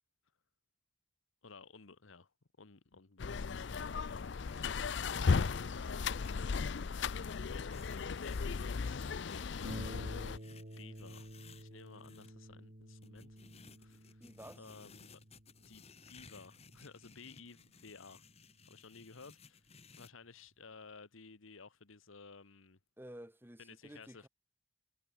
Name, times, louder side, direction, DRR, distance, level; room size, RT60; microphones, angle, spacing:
voice 1, 1.4-2.3 2.6-4.2 5.7-6.6 7.5-9.1 9.4-9.9 10.8-11.3 11.5-14.2 14.6-15.2 15.6-18.2 18.7-19.6 19.9-22.8 23.6-24.3, left 4 dB, 80° left, 1.2 m, -55 dB
sound 1, 3.2-10.4, left 5 dB, 60° left, 0.5 m, -36 dB
sound 2, 4.1-12.3 13.0-20.1, left 5 dB, 30° left, 1.9 m, -60 dB
Harp, 9.6-18.8 19.7-19.8 20.2-20.3, right 1 dB, 45° right, 3.1 m, -51 dB
voice 2, 14.2-14.7 23.0-24.3, right 1 dB, 10° right, 2.4 m, -52 dB
head